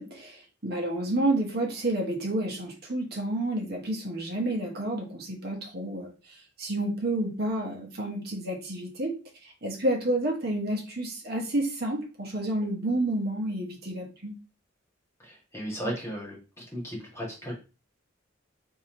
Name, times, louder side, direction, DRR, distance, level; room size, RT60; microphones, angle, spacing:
voice 1, 0.0-6.1 6.6-9.2 9.6-14.4, right 1 dB, 55° right, 1 dB, 1.1 m, -30 dB
voice 2, 15.2-16.4 16.7-17.5, equal, 15° left, -3 dB, 1.6 m, -35 dB
3.5 x 2.7 x 4.3 m, 0.32 s
head